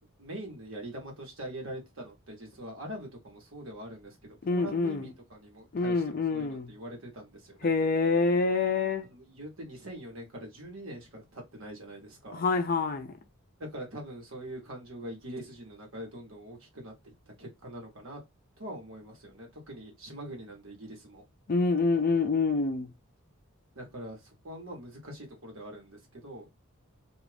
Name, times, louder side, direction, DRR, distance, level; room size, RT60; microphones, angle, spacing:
voice 1, 0.2-7.7 9.1-12.4 13.6-18.2 18.6-21.2 23.7-26.5, right 1 dB, 65° right, 1.2 m, -43 dB
voice 2, 4.4-5.1 5.7-6.7 7.6-9.1 12.3-13.2 21.5-22.9, left 4 dB, 40° left, 0.4 m, -26 dB
2.5 x 2.4 x 3.2 m
head